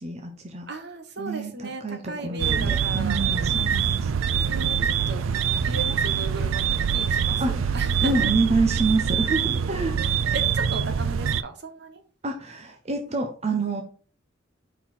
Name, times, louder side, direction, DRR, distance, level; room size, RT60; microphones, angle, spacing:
voice 1, 0.0-0.6 1.2-4.1 7.4-10.0 12.2-13.8, right 3 dB, 35° right, 3 dB, 0.8 m, -27 dB
voice 2, 0.7-3.2 4.4-5.2 5.6-8.3 9.6-12.0, right 3 dB, 60° right, 6 dB, 1.1 m, -36 dB
sound 1, 2.4-11.4, right 7 dB, 90° right, 0.4 m, -24 dB
5.5 x 4.5 x 4.4 m, 0.40 s
head